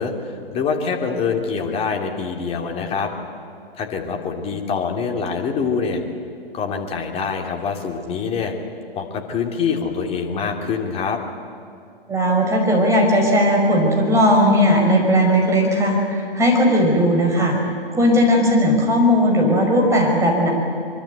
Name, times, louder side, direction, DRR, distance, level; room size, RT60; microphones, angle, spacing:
voice 1, 0.0-3.1 3.7-6.0 6.5-8.5 9.0-11.2, left 5 dB, 20° left, 3 dB, 2.8 m, -25 dB
voice 2, 12.1-17.6 17.9-20.5, equal, 10° right, -1 dB, 5.1 m, -17 dB
24.5 x 24.0 x 8.1 m, 2.4 s
figure-of-eight pair, 115°, 29 cm